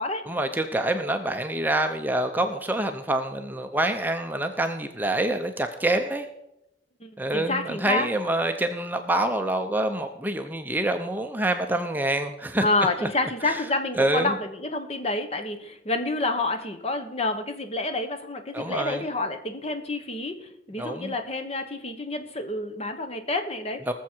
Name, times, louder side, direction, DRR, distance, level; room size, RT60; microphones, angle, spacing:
voice 1, 0.3-6.3 7.2-12.7 13.0-13.1 13.4-13.6 14.0-14.4 18.5-19.1 20.8-21.1 23.9-24.0, right 1 dB, 10° right, 6 dB, 0.6 m, -26 dB
voice 2, 7.0-8.1 12.6-23.8, left 2 dB, 35° left, 7 dB, 1.1 m, -28 dB
19.5 x 7.2 x 4.5 m, 0.84 s
head